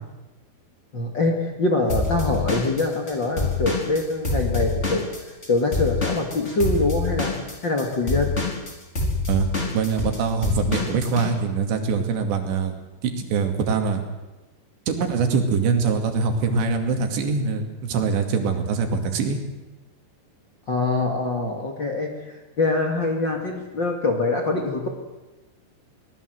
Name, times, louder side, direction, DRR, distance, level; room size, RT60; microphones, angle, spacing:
voice 1, 0.9-7.3 7.6-8.3 20.7-24.9, left 3 dB, 40° left, 2 dB, 1.9 m, -24 dB
Drum kit / Drum, 1.9-5.5 5.7-11.3, left 3 dB, 15° left, 4.6 m, -25 dB
voice 2, 9.3-12.7 13.0-14.0 14.9-19.4, right 5 dB, 90° right, 5 dB, 4.6 m, -23 dB
23.5 x 19.0 x 7.9 m, 1.1 s
omnidirectional pair, 4.9 m